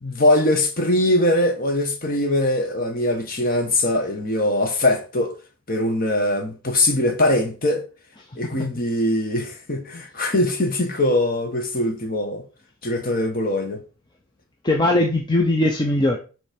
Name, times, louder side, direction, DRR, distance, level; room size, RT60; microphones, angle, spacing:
voice 1, 0.0-5.3 5.7-7.8 8.4-12.4 12.8-13.8, left 1 dB, 40° left, 1.2 m, -21 dB
voice 2, 8.3-8.7 14.6-16.2, left 1 dB, 20° left, 0.5 m, -20 dB
7.0 x 3.2 x 5.1 m
head